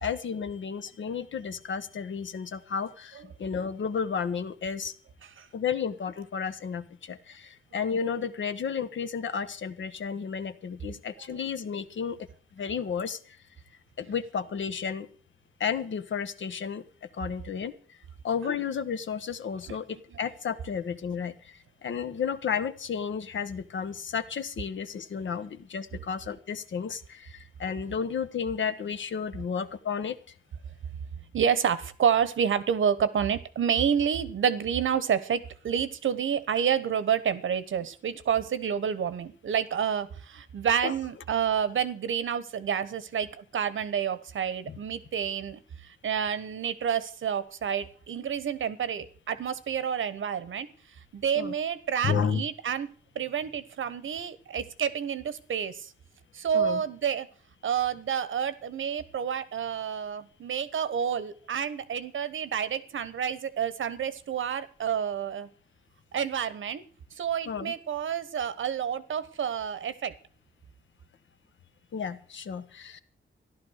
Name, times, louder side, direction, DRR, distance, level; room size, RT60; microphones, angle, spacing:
voice 1, 0.0-4.9 5.5-12.2 12.6-13.4 14.0-15.1 15.6-16.8 17.2-18.0 18.2-30.2 40.8-40.9 44.7-44.8 51.3-51.5 52.0-52.4 56.5-56.8 67.5-67.7 71.9-73.0, left 6 dB, 70° left, 11 dB, 1.2 m, -32 dB
voice 2, 10.9-11.3 19.7-19.8 20.1-20.2 31.3-50.7 51.1-52.9 53.1-55.9 56.3-57.3 57.6-65.5 66.1-66.8 67.2-70.1, right 8 dB, 85° right, 15 dB, 1.2 m, -29 dB
14.0 x 11.5 x 6.5 m, 0.43 s
wide cardioid pair, 125°, 20 cm